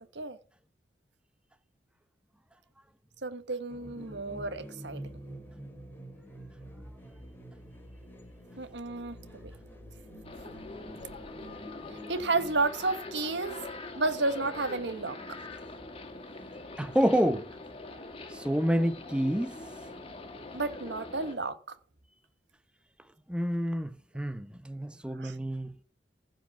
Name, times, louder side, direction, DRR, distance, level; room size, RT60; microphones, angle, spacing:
voice 1, 3.2-5.0 8.6-9.5 12.1-13.7 13.9-15.2 20.5-21.7 25.2-25.3, right 3 dB, 85° right, 1.2 m, -32 dB
sound 1, 3.7-12.7, equal, 10° left, 2.8 m, -47 dB
sound 2, 10.2-21.3, left 2 dB, 35° left, 2.2 m, -43 dB
voice 2, 16.8-17.5 18.3-19.6 23.3-25.8, equal, 5° right, 0.7 m, -28 dB
15.5 x 5.2 x 7.1 m
head